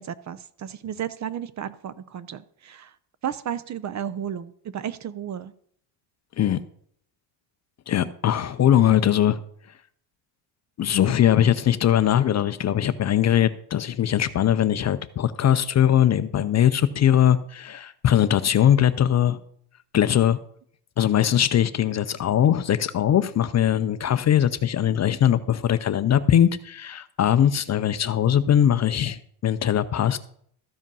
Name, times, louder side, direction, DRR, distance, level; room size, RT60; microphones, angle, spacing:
voice 1, 0.0-2.9 3.2-5.5, right 9 dB, 35° right, 16 dB, 0.6 m, -33 dB
voice 2, 7.9-9.4 10.8-19.4 19.9-20.4 21.0-30.2, left 10 dB, 35° left, 13 dB, 0.5 m, -21 dB
13.5 x 5.1 x 5.4 m, 0.65 s
cardioid pair, 100°, 48 cm